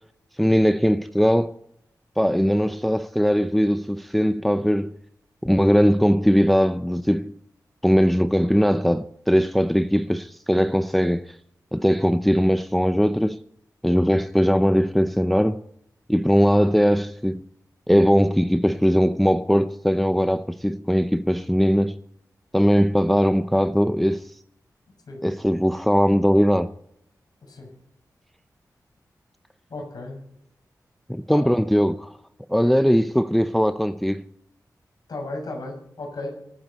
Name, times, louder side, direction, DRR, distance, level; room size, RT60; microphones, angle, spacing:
voice 1, 0.4-1.6 2.2-4.9 5.4-7.4 7.8-11.4 11.7-13.4 13.8-15.6 16.1-17.5 17.9-22.0 22.5-24.3 25.2-26.7 31.1-32.2 32.5-34.2, equal, ahead, 0.6 m, -20 dB
voice 2, 29.7-30.2 31.3-31.4 35.1-36.3, left 2 dB, 75° left, 6.8 m, -34 dB
26.5 x 9.5 x 4.2 m
wide cardioid pair, 75°, 7 cm